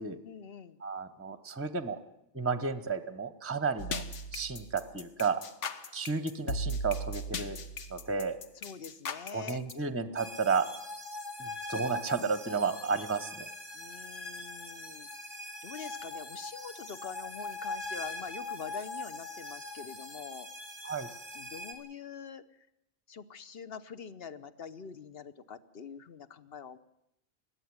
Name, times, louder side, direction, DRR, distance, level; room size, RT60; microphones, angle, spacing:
voice 1, 0.2-0.8 8.6-9.6 13.7-15.1 15.6-20.5 21.3-22.4 23.1-26.8, left 6 dB, 55° left, 11 dB, 1.1 m, -45 dB
voice 2, 0.8-2.0 2.3-4.0 4.3-5.4 5.9-7.6 7.9-8.4 9.3-10.7 11.4-13.5 20.8-21.1, right 5 dB, 15° right, 13 dB, 0.8 m, -32 dB
sound 1, 3.8-9.7, left 1 dB, 75° left, 1.5 m, -37 dB
sound 2, 10.2-21.7, left 2 dB, 40° left, 3.6 m, -42 dB
20.5 x 14.0 x 9.6 m, 0.83 s
omnidirectional pair, 1.3 m